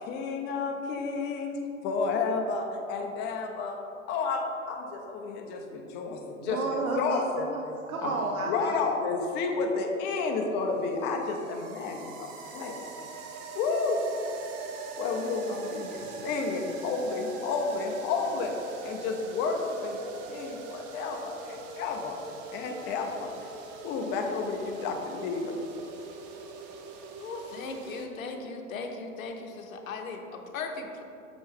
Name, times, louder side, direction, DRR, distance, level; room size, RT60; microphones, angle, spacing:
voice 1, 0.0-3.8 4.1-6.6 6.9-7.5 8.0-8.1 8.4-12.8 13.5-14.0 15.0-18.5 18.8-22.2 22.5-23.5 23.8-25.6, left 4 dB, 25° left, 3 dB, 0.6 m, -31 dB
voice 2, 6.4-8.8, right 3 dB, 75° right, 1 dB, 0.7 m, -32 dB
sound 1, 10.1-28.1, right 4 dB, 30° right, 0.5 m, -42 dB
voice 3, 27.2-31.0, left 4 dB, 70° left, 4 dB, 0.8 m, -38 dB
6.6 x 4.3 x 3.6 m, 2.7 s
figure-of-eight pair, 105°, 43 cm